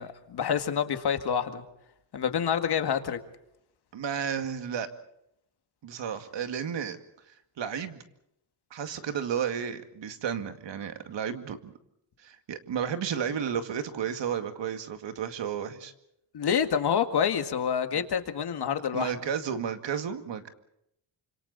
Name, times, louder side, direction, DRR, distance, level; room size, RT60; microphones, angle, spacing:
voice 1, 0.0-1.6 2.1-3.2 16.3-19.1, left 7 dB, 60° left, 8 dB, 2.0 m, -27 dB
voice 2, 3.9-4.9 5.8-7.0 7.3-8.0 8.7-11.7 12.2-15.9 18.9-20.5, right 8 dB, 70° right, 8 dB, 2.3 m, -32 dB
29.0 x 26.5 x 4.2 m, 0.78 s
wide cardioid pair, 175°, 45 cm